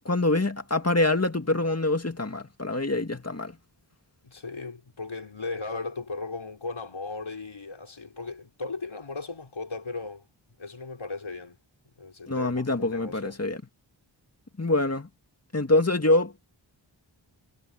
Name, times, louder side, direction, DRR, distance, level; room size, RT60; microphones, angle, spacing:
voice 1, 0.1-3.5 12.3-13.6 14.6-15.1 15.5-16.5, left 2 dB, 30° left, 2.3 m, -25 dB
voice 2, 4.2-10.3 10.6-11.6 12.0-13.4, left 3 dB, 80° left, 5.5 m, -37 dB
wide cardioid pair, 40°, 47 cm